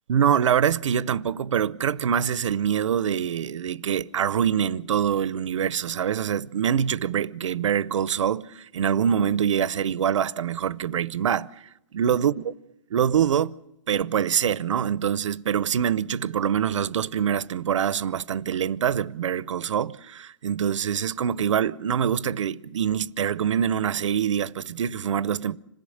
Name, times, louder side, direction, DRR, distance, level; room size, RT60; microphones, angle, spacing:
voice 1, 0.1-11.5 11.9-12.5 12.9-13.5 13.9-25.6, right 8 dB, 90° right, 0.7 m, -24 dB
26.5 x 17.0 x 6.5 m
hypercardioid pair, 160°, 15 cm